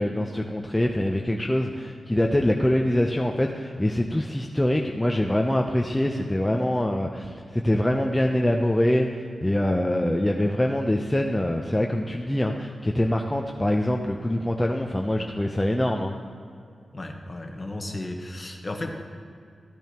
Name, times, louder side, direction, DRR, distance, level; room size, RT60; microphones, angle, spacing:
voice 1, 0.0-16.1, left 1 dB, 10° left, 2 dB, 0.5 m, -24 dB
voice 2, 16.9-18.9, left 2 dB, 30° left, 3 dB, 1.1 m, -34 dB
14.0 x 9.0 x 2.9 m, 2.3 s
cardioid pair, 75°, 0 cm